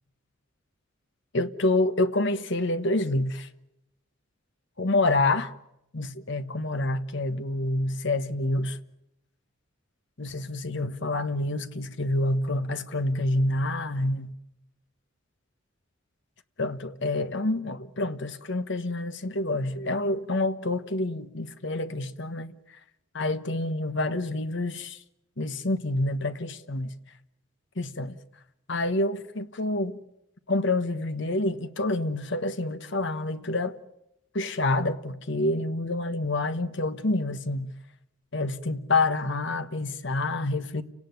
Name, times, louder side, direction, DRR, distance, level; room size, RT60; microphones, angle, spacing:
voice 1, 1.3-3.5 4.8-5.5 5.9-8.8 10.2-14.3 16.6-22.5 23.1-25.0 25.4-26.9 27.8-28.2 28.7-30.0 30.5-33.8 34.3-37.7 38.3-40.8, left 2 dB, 60° left, 1.3 m, -27 dB
29.5 x 18.0 x 9.3 m
head